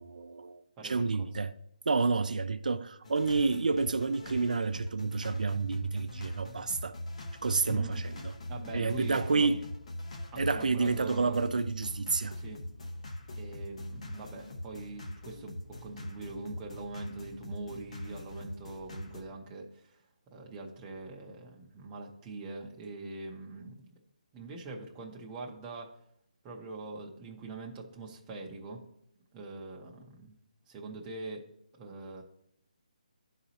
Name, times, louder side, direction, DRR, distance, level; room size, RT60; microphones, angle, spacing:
voice 1, 0.0-1.5 1.9-7.0 7.4-8.3 8.7-9.6 10.4-12.4, right 4 dB, 80° right, 0.4 m, -29 dB
voice 2, 0.8-1.3 7.7-8.0 8.5-9.6 10.3-11.5 12.3-12.6 13.4-20.0 20.3-23.9 24.3-26.0 26.4-28.8 29.3-30.3 30.7-31.5 31.8-32.2, right 3 dB, 15° right, 0.6 m, -43 dB
sound 1, 3.0-19.2, left 1 dB, 55° left, 1.0 m, -42 dB
11.5 x 4.0 x 2.8 m
hypercardioid pair, 170°, 4 cm